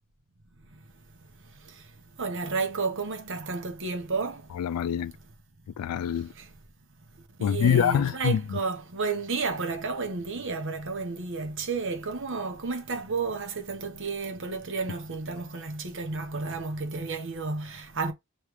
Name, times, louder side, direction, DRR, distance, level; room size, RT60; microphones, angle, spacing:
voice 1, 2.2-4.4 7.4-18.1, right 4 dB, 60° right, 1.0 m, -31 dB
voice 2, 4.6-5.1 5.8-6.3 7.4-8.4, left 8 dB, 85° left, 0.3 m, -25 dB
3.2 x 3.2 x 4.8 m
head